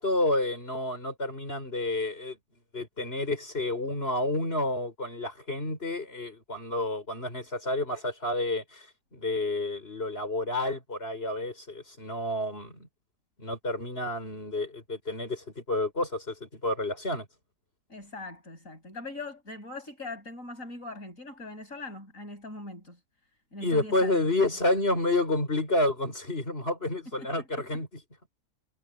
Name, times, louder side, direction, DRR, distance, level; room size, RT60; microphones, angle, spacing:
voice 1, 0.0-2.4 2.7-8.9 9.1-12.9 13.4-17.3 23.6-28.0, left 2 dB, 50° left, 5.8 m, -30 dB
voice 2, 17.9-23.0 23.5-24.3 27.2-27.3, left 2 dB, 85° left, 8.6 m, -41 dB
omnidirectional pair, 1.4 m